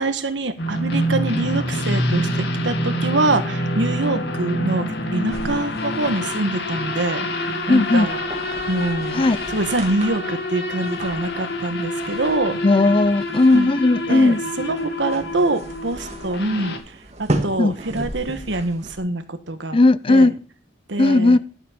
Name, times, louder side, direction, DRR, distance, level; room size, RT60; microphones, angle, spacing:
voice 1, 0.0-8.2 8.7-12.6 13.5-13.7 14.1-19.8 20.1-20.3 20.9-21.4, right 2 dB, 75° right, 1.5 m, -25 dB
sound 1, 0.6-16.8, equal, 60° left, 1.9 m, -26 dB
sound 2, 5.3-19.0, right 1 dB, 35° right, 2.2 m, -35 dB
voice 2, 7.7-8.1 9.1-9.4 12.6-14.4 17.6-17.7 19.7-20.4 21.0-21.4, left 2 dB, 30° left, 0.4 m, -16 dB
12.0 x 7.1 x 5.1 m
head